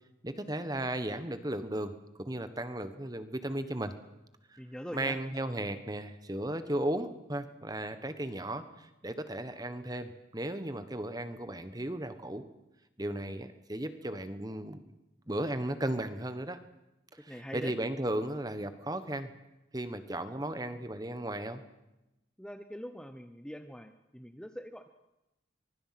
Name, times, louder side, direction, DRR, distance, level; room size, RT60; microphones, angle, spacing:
voice 1, 0.2-1.9 2.2-3.9 4.5-4.6 4.9-12.4 13.0-14.8 15.3-16.6 17.3-19.3 19.7-21.6, right 1 dB, 20° right, 11 dB, 1.3 m, -35 dB
voice 2, 4.6-5.2 17.3-17.7 22.4-24.9, equal, 5° left, 8 dB, 0.8 m, -43 dB
24.0 x 23.5 x 6.0 m, 0.94 s
head